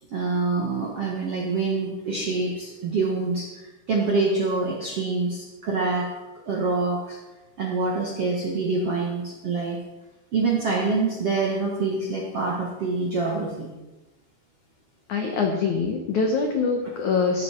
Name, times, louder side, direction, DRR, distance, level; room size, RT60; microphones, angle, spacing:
voice 1, 0.1-6.1 6.5-7.2 7.6-9.8 10.3-13.7, right 3 dB, 60° right, -2 dB, 1.5 m, -26 dB
voice 2, 15.1-17.4, left 4 dB, 75° left, 3 dB, 1.7 m, -24 dB
15.0 x 12.5 x 4.4 m, 1.1 s
omnidirectional pair, 5.2 m